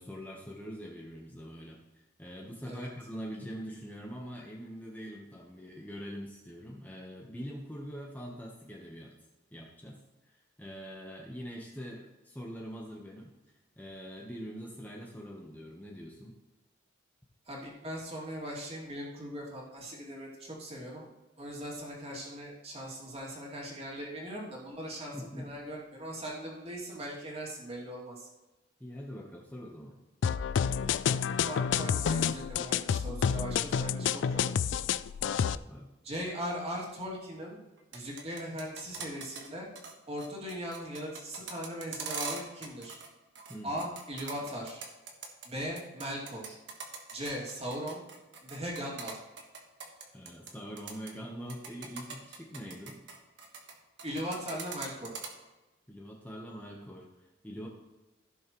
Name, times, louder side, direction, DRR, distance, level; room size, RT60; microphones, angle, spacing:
voice 1, 0.0-9.1 9.5-10.0 10.2-13.3 13.8-16.4 25.1-25.5 28.8-30.0 35.5-35.9 43.5-43.9 50.1-53.0 55.9-57.7, equal, 10° left, -2 dB, 1.0 m, -43 dB
voice 2, 17.5-21.1 21.4-28.3 31.4-34.8 36.0-37.6 37.9-39.7 40.1-43.0 43.6-44.8 45.4-46.6 47.1-48.0 48.4-49.2 54.0-55.1, equal, 30° right, -4 dB, 2.6 m, -39 dB
sound 1, 30.2-35.6, left 7 dB, 70° left, 0.3 m, -29 dB
sound 2, 37.8-39.5 39.7-39.9 40.2-43.1 43.3-45.5 45.8-50.5 50.8-51.1 51.5-53.7 54.0-55.3, right 5 dB, 65° right, 1.5 m, -41 dB
15.5 x 6.4 x 3.1 m, 1.1 s
head